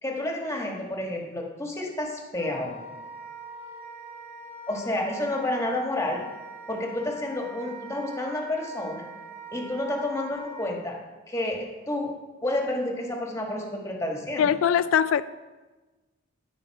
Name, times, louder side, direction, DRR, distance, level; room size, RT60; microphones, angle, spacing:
voice 1, 0.0-2.8 4.7-6.2 6.7-9.1 9.5-10.9 11.3-12.1 12.4-14.5, left 1 dB, 15° left, 1 dB, 1.5 m, -30 dB
Wind instrument woodwind instrument, 2.3-10.7, right 2 dB, 35° right, 3.0 m, -43 dB
voice 2, 14.4-15.2, left 8 dB, 85° left, 13 dB, 0.3 m, -21 dB
15.5 x 5.2 x 4.7 m, 1.2 s
head